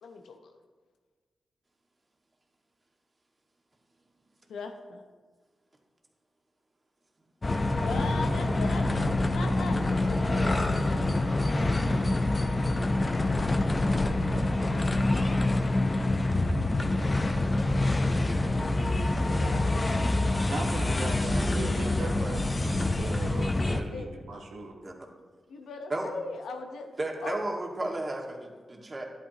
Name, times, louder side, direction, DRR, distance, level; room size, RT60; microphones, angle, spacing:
voice 1, 0.0-0.5 4.5-5.0 7.8-12.3 19.2-19.8 23.9-24.1 25.5-26.9 27.2-27.4, left 4 dB, 90° left, 5 dB, 0.8 m, -41 dB
sound 1, 7.4-23.8, left 2 dB, 35° left, 0.8 m, -26 dB
voice 2, 20.5-24.7, right 3 dB, 80° right, 2 dB, 1.1 m, -38 dB
voice 3, 27.0-29.1, right 2 dB, 35° right, 0 dB, 1.8 m, -33 dB
10.5 x 8.8 x 2.9 m, 1.4 s
cardioid pair, 50°, 0 cm